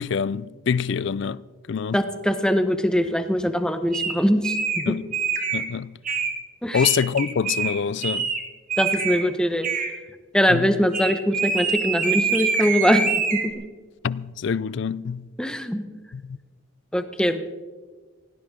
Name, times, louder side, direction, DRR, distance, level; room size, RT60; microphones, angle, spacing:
voice 1, 0.0-2.0 4.9-5.1 5.5-6.0 6.7-8.3 10.5-10.7 14.0-15.3 16.1-16.4, left 6 dB, 55° left, 0.4 m, -26 dB
voice 2, 1.9-4.9 6.6-6.8 8.8-9.7 10.3-13.6 15.4-15.8 16.9-17.4, equal, 5° left, 0.8 m, -22 dB
sound 1, 3.9-4.1 4.4-4.8 5.1-5.7 6.0-6.4 6.7-7.7 8.0-8.4 8.7-9.2 9.6-9.9 10.9-13.5, right 5 dB, 40° right, 1.6 m, -25 dB
17.0 x 17.0 x 3.7 m
head